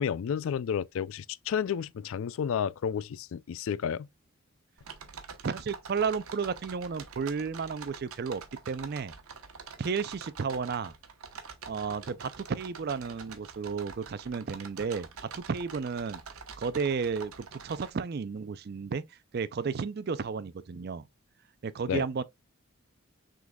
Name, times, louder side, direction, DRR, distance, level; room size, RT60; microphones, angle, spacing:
voice 1, 0.0-4.1 21.9-22.0, left 7 dB, 65° left, 0.3 m, -31 dB
sound 1, 4.8-17.9, right 5 dB, 75° right, 0.9 m, -46 dB
voice 2, 5.4-9.1 9.8-10.9 11.7-16.2 16.6-19.0 19.3-21.0 21.6-22.2, right 5 dB, 45° right, 0.4 m, -33 dB
6.0 x 3.8 x 2.2 m
head